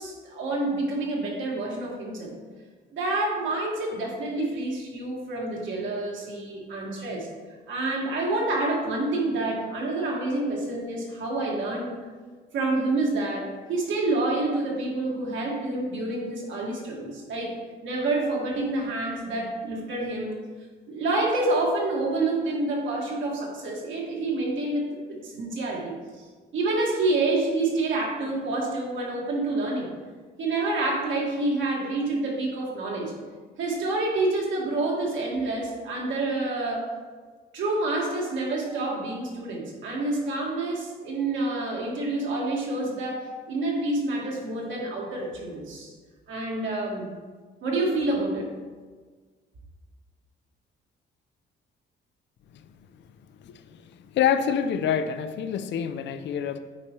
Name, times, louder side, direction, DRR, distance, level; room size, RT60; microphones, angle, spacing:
voice 1, 0.0-2.3 2.9-7.3 7.7-12.0 12.5-20.4 20.9-25.9 26.5-29.9 30.4-33.2 33.6-37.0 37.5-45.9 46.3-47.1 47.6-48.5, right 2 dB, 75° right, -2 dB, 1.7 m, -28 dB
voice 2, 54.1-56.6, left 8 dB, 65° left, 10 dB, 0.5 m, -26 dB
8.7 x 4.6 x 3.0 m, 1.4 s
cardioid pair, 90°, 20 cm